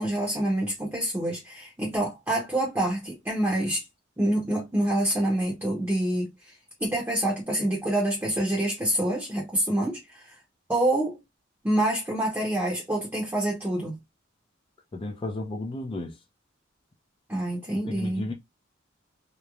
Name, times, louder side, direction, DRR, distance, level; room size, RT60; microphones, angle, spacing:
voice 1, 0.0-3.8 4.2-6.5 6.8-10.3 10.7-11.2 11.6-14.0 17.3-18.2, right 1 dB, 10° right, 0.7 m, -27 dB
voice 2, 14.9-16.2 17.9-18.3, left 2 dB, 25° left, 0.4 m, -33 dB
2.9 x 2.1 x 2.3 m
head